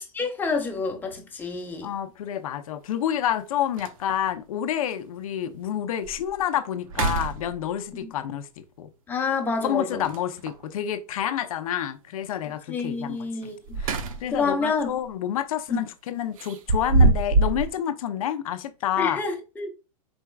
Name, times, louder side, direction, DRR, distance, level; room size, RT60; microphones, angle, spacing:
voice 1, 0.0-1.9 9.1-10.1 12.7-13.8 14.3-15.0 15.7-15.8 19.0-19.7, left 4 dB, 10° left, 0.9 m, -28 dB
sound 1, 1.0-1.2 2.9-3.0 3.4-3.5 3.8-4.3 4.9-5.0 5.5-5.6 6.0-6.4 6.8-7.9 10.0-10.7 13.4-14.5 14.9-15.1 16.4-17.7, right 3 dB, 65° right, 0.7 m, -24 dB
voice 2, 1.8-8.5 8.8-8.9 9.6-13.2 13.4-13.5 13.8-13.9 14.2-19.2, left 10 dB, 70° left, 0.7 m, -28 dB
4.7 x 4.3 x 2.3 m
hypercardioid pair, 140°, 19 cm